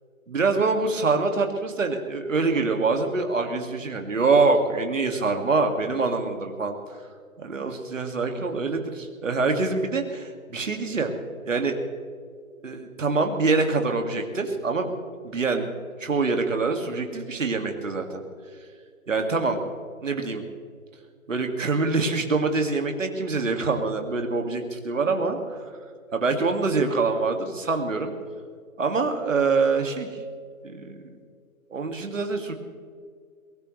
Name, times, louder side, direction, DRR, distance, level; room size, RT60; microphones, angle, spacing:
voice 1, 0.3-6.8 7.4-11.1 11.4-11.8 12.6-14.9 15.2-18.2 19.1-19.6 20.0-20.4 21.3-25.6 26.1-28.1 28.8-30.1 30.6-31.1 31.7-32.5, right 3 dB, 60° right, 5 dB, 2.2 m, -25 dB
22.0 x 19.0 x 3.2 m, 2.1 s
figure-of-eight pair, 155°, 42 cm